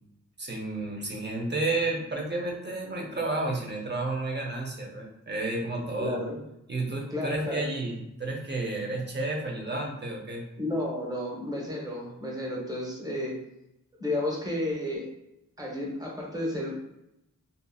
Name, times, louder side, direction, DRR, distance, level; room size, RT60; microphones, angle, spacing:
voice 1, 0.4-6.2 6.7-10.4, right 2 dB, 30° right, 0 dB, 0.7 m, -31 dB
voice 2, 6.0-6.4 7.1-7.7 10.6-13.4 14.0-15.1 15.6-16.7, left 1 dB, 10° right, -4 dB, 1.0 m, -32 dB
2.7 x 2.5 x 2.3 m, 0.85 s
wide cardioid pair, 55°, 34 cm